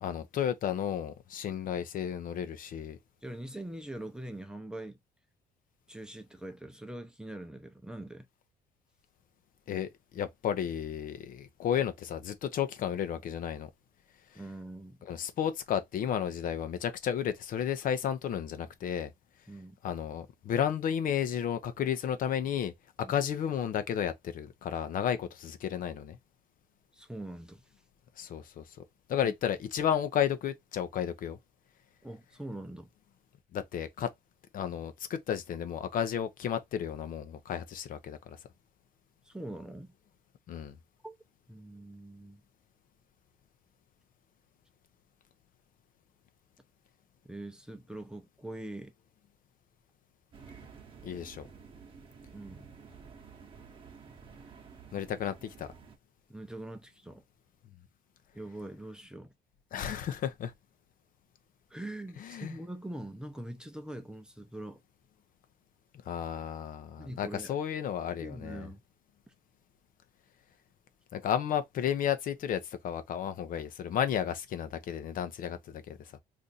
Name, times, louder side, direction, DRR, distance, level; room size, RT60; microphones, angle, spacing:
voice 1, 0.0-3.0 9.7-13.7 15.1-19.1 19.8-22.7 23.1-26.2 28.2-28.6 29.1-31.4 33.5-34.1 34.5-38.4 40.5-40.7 51.0-51.5 54.9-55.7 59.7-60.5 62.2-62.5 66.1-68.7 71.1-76.0, left 9 dB, 55° left, 0.6 m, -33 dB
voice 2, 3.2-5.0 5.9-8.3 14.3-15.0 19.5-19.8 23.0-23.2 26.9-27.7 29.2-29.3 32.0-32.9 39.2-39.9 41.0-41.2 41.5-42.4 47.2-48.9 52.3-52.7 56.3-57.2 58.3-59.3 61.7-64.8 67.0-67.6 68.2-68.8, right 1 dB, 5° right, 0.6 m, -43 dB
sound 1, 50.3-56.0, right 5 dB, 30° right, 0.9 m, -52 dB
2.6 x 2.5 x 4.0 m
cardioid pair, 110°, 17 cm